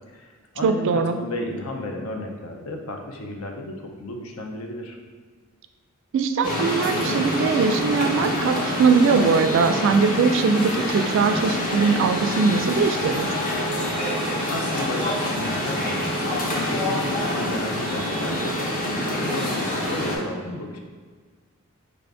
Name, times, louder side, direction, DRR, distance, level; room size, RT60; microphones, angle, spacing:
voice 1, 0.1-5.0 14.5-20.8, left 1 dB, 80° left, 3 dB, 0.6 m, -33 dB
voice 2, 0.6-1.2 6.1-13.3, right 5 dB, 60° right, 8 dB, 0.3 m, -21 dB
sound 1, 6.4-20.2, left 1 dB, 40° left, 0.8 m, -26 dB
4.9 x 2.5 x 3.4 m, 1.5 s
head